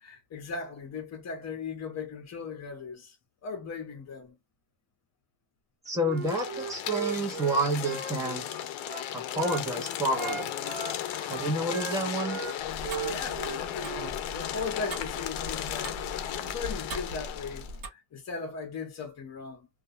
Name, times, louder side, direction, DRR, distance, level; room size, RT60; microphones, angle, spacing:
voice 1, 0.0-3.2 3.4-4.4 13.0-19.7, left 4 dB, 35° left, 0.8 m, -38 dB
voice 2, 5.8-8.5 9.1-10.5 11.3-12.4, right 1 dB, 5° right, 0.6 m, -29 dB
Wind instrument woodwind instrument, 6.0-9.7 10.1-12.6 12.8-14.1, right 7 dB, 85° right, 1.0 m, -37 dB
sound 1, 6.2-17.7, left 11 dB, 75° left, 0.6 m, -35 dB
Tick-tock, 12.6-17.9, equal, 45° right, 0.9 m, -41 dB
2.3 x 2.2 x 2.6 m
cardioid pair, 175°, 48 cm